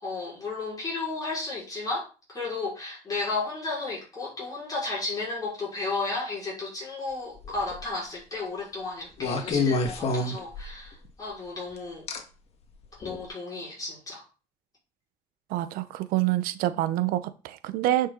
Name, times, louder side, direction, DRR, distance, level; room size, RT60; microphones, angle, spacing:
voice 1, 0.0-12.1 13.0-14.2, left 3 dB, 25° left, -5 dB, 5.2 m, -33 dB
sound 1, 7.4-7.8 9.2-10.9 12.1-12.2 13.0-13.2, left 3 dB, 45° left, 1.8 m, -27 dB
voice 2, 15.5-18.1, right 14 dB, 85° right, 12 dB, 0.9 m, -26 dB
9.7 x 5.7 x 3.9 m, 0.35 s
cardioid pair, 130°, 15 cm